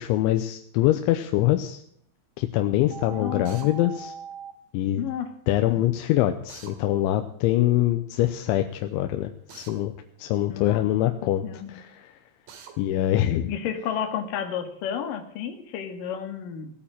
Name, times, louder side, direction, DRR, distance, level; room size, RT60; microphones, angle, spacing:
voice 1, 0.0-1.8 2.4-4.1 4.7-5.0 5.5-9.9 10.2-12.1 12.8-13.5, left 13 dB, 85° left, 8 dB, 3.2 m, -24 dB
sound 1, 2.9-4.5, right 6 dB, 65° right, 3.1 m, -39 dB
voice 2, 3.1-3.4 5.0-5.3 5.7-5.8 10.5-10.9 11.4-11.8 13.5-16.7, left 8 dB, 55° left, 7 dB, 3.1 m, -31 dB
Drill, 3.5-3.7 6.5-6.8 9.5-9.8 12.5-12.7, right 7 dB, 85° right, 4.7 m, -45 dB
18.0 x 8.7 x 8.9 m, 0.65 s
omnidirectional pair, 5.3 m